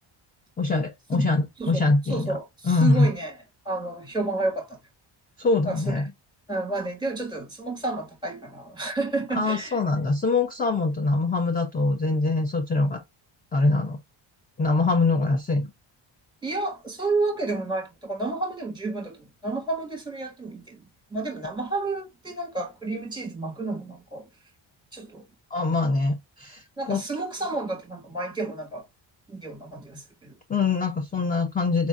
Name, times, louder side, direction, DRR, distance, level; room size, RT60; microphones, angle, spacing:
voice 1, 0.6-2.4 2.6-3.1 5.4-6.1 9.3-13.0 13.5-14.0 14.6-15.7 25.5-27.0 30.5-31.9, left 3 dB, 20° left, 0.5 m, -23 dB
voice 2, 2.1-3.3 3.6-4.8 5.7-6.0 6.5-9.8 16.4-20.8 21.1-24.3 24.9-25.2 26.8-28.8 29.3-30.4, right 2 dB, 10° right, 1.4 m, -31 dB
4.3 x 2.5 x 2.3 m
cardioid pair, 120°, 48 cm